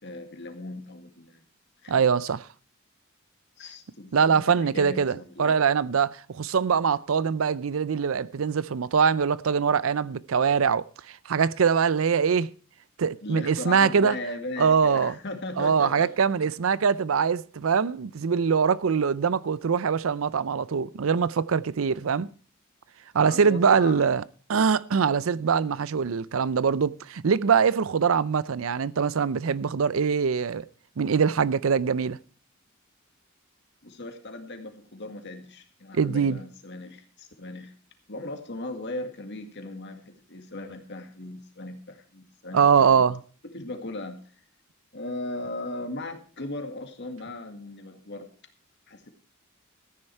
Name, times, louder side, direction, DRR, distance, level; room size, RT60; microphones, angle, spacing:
voice 1, 0.0-1.4 1.8-2.1 3.6-5.6 13.2-16.1 16.4-16.5 23.2-24.0 33.8-37.7 38.1-43.1 43.5-44.2 44.9-48.3 48.9-49.1, left 2 dB, 55° left, 2.0 m, -38 dB
voice 2, 1.9-2.4 4.1-12.5 13.0-14.2 14.6-15.1 15.6-22.3 23.1-24.2 24.5-30.6 31.0-32.2 35.9-36.4 42.5-43.2, right 6 dB, 75° right, 0.5 m, -23 dB
14.0 x 9.9 x 4.6 m
head